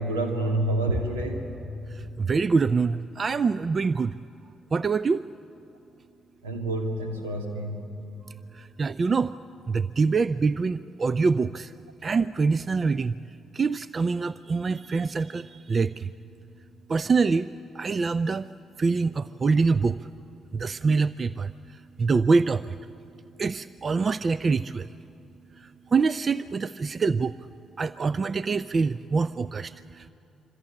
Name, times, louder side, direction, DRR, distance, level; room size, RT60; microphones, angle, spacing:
voice 1, 0.0-1.5 6.4-7.9, right 1 dB, 85° right, 4 dB, 2.3 m, -28 dB
voice 2, 2.2-4.1 4.7-5.2 8.5-9.3 9.7-11.7 12.0-13.1 13.5-16.1 16.9-17.5 17.8-18.5 18.8-20.0 20.5-21.5 22.0-22.7 23.4-24.9 25.9-27.3 27.8-30.1, right 4 dB, 40° right, 16 dB, 0.5 m, -25 dB
26.0 x 25.0 x 8.8 m, 3.0 s
hypercardioid pair, 40°, 0 cm